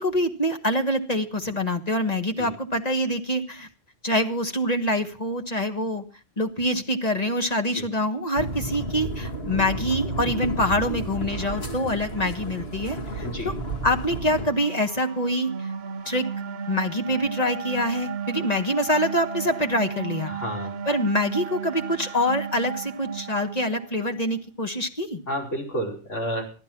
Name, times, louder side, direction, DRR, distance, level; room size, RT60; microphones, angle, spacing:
voice 1, 0.0-3.7 4.0-6.0 6.4-13.5 13.8-15.5 16.1-16.3 16.7-20.3 20.9-25.2, left 1 dB, 35° left, 5 dB, 1.6 m, -25 dB
sound 1, 8.4-14.5, right 1 dB, 55° left, 2.5 m, -32 dB
sound 2, 13.7-24.2, right 7 dB, 60° right, 1.1 m, -35 dB
voice 2, 20.3-20.7 25.3-26.5, equal, 75° left, 0 dB, 5.4 m, -30 dB
15.0 x 12.0 x 6.0 m, 0.37 s
omnidirectional pair, 1.2 m